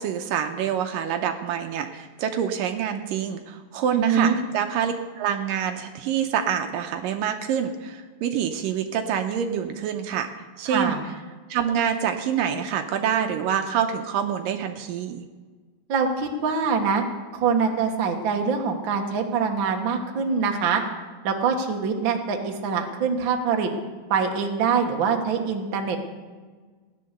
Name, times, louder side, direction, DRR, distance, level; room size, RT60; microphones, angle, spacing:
voice 1, 0.0-10.3 10.6-11.0 11.5-15.2, right 8 dB, 75° right, 5 dB, 2.2 m, -26 dB
voice 2, 4.0-4.4 10.7-11.0 15.9-17.0 17.3-20.8 21.2-23.7 24.1-26.0, right 5 dB, 60° right, 2 dB, 1.3 m, -24 dB
17.0 x 10.5 x 6.7 m, 1.4 s
omnidirectional pair, 4.4 m